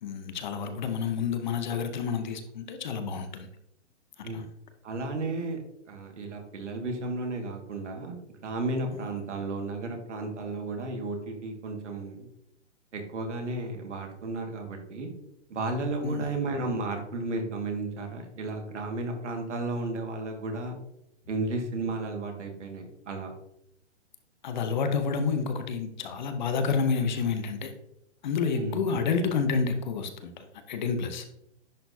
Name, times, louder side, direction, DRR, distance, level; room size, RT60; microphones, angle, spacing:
voice 1, 0.0-3.5 4.2-4.5 8.9-9.0 16.0-16.3 24.4-27.7 28.2-31.2, left 5 dB, 40° left, 7 dB, 0.8 m, -29 dB
voice 2, 4.8-5.6 5.9-8.2 8.4-12.3 12.9-15.1 15.5-20.8 21.3-23.3 28.5-28.8, right 2 dB, 80° right, 3 dB, 1.9 m, -33 dB
10.5 x 4.2 x 2.7 m, 0.80 s
hypercardioid pair, 160°, 35 cm